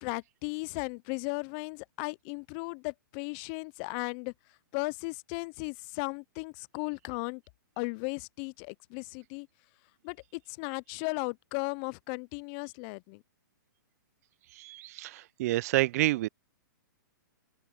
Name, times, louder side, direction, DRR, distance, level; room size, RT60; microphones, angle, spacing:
voice 1, 0.0-4.3 4.7-7.4 7.8-9.5 10.0-13.2, left 31 dB, 35° left, 0.4 m, -36 dB
voice 2, 14.6-16.3, right 17 dB, 45° right, 0.4 m, -29 dB
hypercardioid pair, 140°, 11 cm